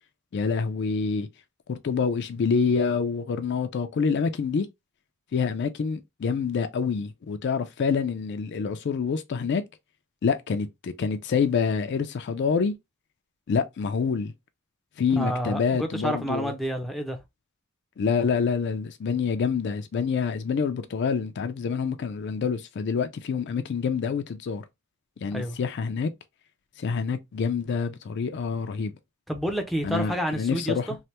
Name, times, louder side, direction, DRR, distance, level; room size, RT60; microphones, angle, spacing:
voice 1, 0.3-1.3 1.7-4.7 5.3-9.6 10.2-12.7 13.5-14.3 15.0-16.5 18.0-24.6 25.2-26.1 26.8-29.0 29.8-30.9, left 5 dB, 55° left, 0.4 m, -27 dB
voice 2, 15.2-17.2 25.3-25.6 29.3-31.0, equal, ahead, 0.5 m, -29 dB
3.2 x 2.1 x 2.8 m
head